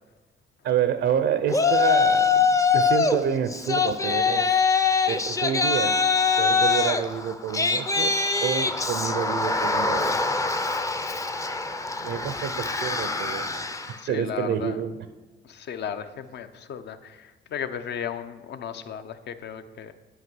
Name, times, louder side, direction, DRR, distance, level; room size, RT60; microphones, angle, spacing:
voice 1, 0.6-4.6 5.1-6.0 6.4-8.1 8.4-10.2 12.0-14.9, right 8 dB, 70° right, 10 dB, 0.5 m, -28 dB
Yell, 1.5-3.2 3.5-14.0, left 5 dB, 15° left, 0.5 m, -23 dB
voice 2, 14.0-14.8 15.4-19.9, left 8 dB, 60° left, 10 dB, 0.6 m, -35 dB
8.0 x 5.5 x 6.1 m, 1.2 s
cardioid pair, 90°, 20 cm